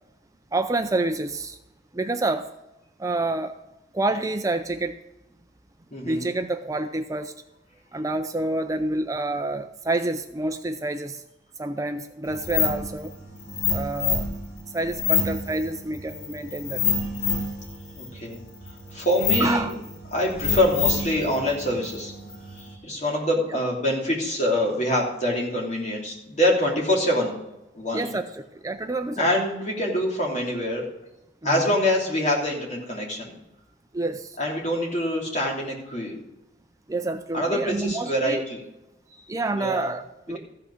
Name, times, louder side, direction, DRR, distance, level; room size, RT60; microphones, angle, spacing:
voice 1, 0.5-1.6 1.9-2.5 3.0-3.6 3.9-5.0 6.0-7.3 7.9-11.2 11.6-13.1 13.7-14.3 14.7-16.8 19.4-19.8 23.5-23.6 27.9-29.3 31.4-31.6 33.9-34.4 36.9-38.4 39.3-40.4, right 2 dB, 20° right, 7 dB, 0.4 m, -28 dB
voice 2, 5.9-6.2 18.0-18.4 18.9-19.7 20.1-22.1 22.5-27.4 27.7-28.1 29.2-30.9 31.4-33.3 34.4-36.2 37.3-38.6 39.5-39.9, left 1 dB, 40° left, -2 dB, 3.2 m, -25 dB
sound 1, 12.3-22.7, left 5 dB, 85° left, 2.5 m, -28 dB
14.5 x 5.8 x 6.5 m, 0.93 s
head